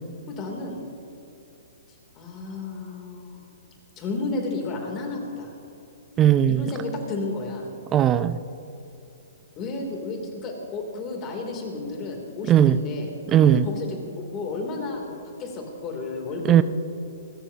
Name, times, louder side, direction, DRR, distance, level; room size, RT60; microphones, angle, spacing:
voice 1, 0.3-0.8 2.2-3.5 4.0-5.5 6.5-7.7 9.6-16.6, left 3 dB, 30° left, 3.1 m, -32 dB
voice 2, 6.2-6.7 7.9-8.4 12.5-12.8 13.3-13.7 16.4-16.6, right 10 dB, 25° right, 0.5 m, -18 dB
26.0 x 14.0 x 2.9 m
hypercardioid pair, 130°, 0 cm